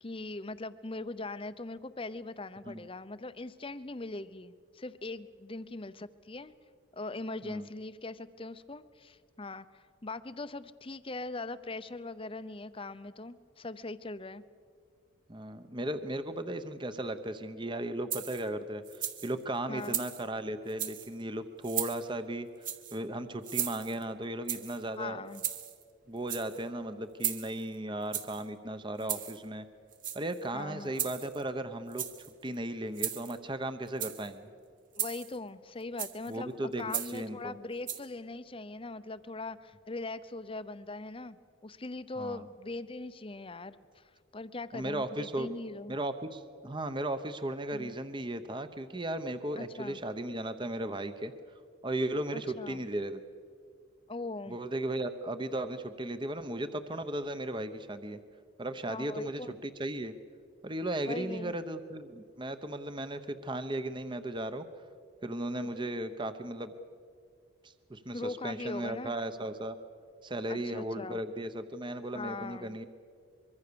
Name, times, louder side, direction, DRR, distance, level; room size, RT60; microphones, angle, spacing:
voice 1, 0.0-6.5 6.9-14.4 19.7-20.0 25.0-25.4 28.9-29.1 30.5-31.1 35.0-41.4 41.6-46.0 47.7-48.0 49.6-50.0 52.3-52.8 54.1-54.6 58.9-59.5 61.1-61.6 68.1-69.1 70.5-71.2 72.1-72.8, left 2 dB, 25° left, 13 dB, 0.7 m, -41 dB
voice 2, 15.3-22.5 22.9-25.2 26.1-29.7 30.1-32.1 32.4-34.5 36.3-37.6 42.2-42.4 44.7-45.5 45.9-51.3 51.8-53.2 54.5-58.2 58.6-60.1 60.6-64.7 65.2-66.7 67.6-69.8 70.2-72.9, right 1 dB, 20° right, 10 dB, 0.8 m, -36 dB
sound 1, 18.1-18.5 18.9-19.3 19.8-20.3 20.7-21.1 21.6-22.0 22.6-23.0 23.4-24.0 24.5-24.8 25.3-25.8 26.2-26.6 27.2-27.6 28.1-28.4 29.0-29.4 29.9-30.4 31.0-31.4 31.9-32.3 33.0-33.4 33.9-34.3 35.0-35.4 36.0-36.3 36.9-37.2 37.9-38.0, right 10 dB, 40° right, 1.5 m, -36 dB
24.5 x 23.0 x 6.9 m, 2.2 s
head